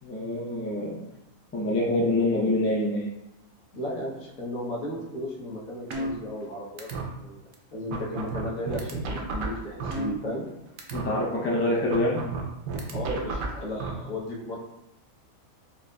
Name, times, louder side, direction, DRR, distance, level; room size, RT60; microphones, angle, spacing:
voice 1, 0.0-1.0 1.5-3.1 10.9-12.2, left 1 dB, 20° left, -4 dB, 0.3 m, -25 dB
voice 2, 3.7-7.4 7.7-10.4 12.9-14.6, left 1 dB, 80° left, -5 dB, 1.4 m, -35 dB
sound 1, 5.9-6.5 6.8-7.0 7.5-7.6 7.9-10.5 10.8-11.0 11.9-13.9, right 3 dB, 75° right, 1.0 m, -32 dB
4.3 x 2.5 x 2.2 m, 0.86 s
omnidirectional pair, 1.4 m